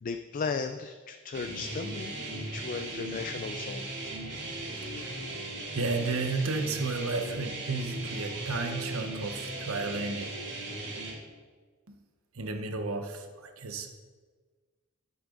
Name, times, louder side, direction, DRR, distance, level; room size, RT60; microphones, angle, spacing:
voice 1, 0.0-3.9, left 5 dB, 40° left, 8 dB, 0.4 m, -36 dB
sound 1, 1.3-11.1, right 2 dB, 55° right, 2.4 m, -38 dB
voice 2, 4.8-5.2 5.7-10.2 11.9-12.0 12.3-13.9, right 3 dB, 80° right, 6 dB, 1.0 m, -33 dB
10.5 x 8.0 x 3.9 m, 1.5 s
head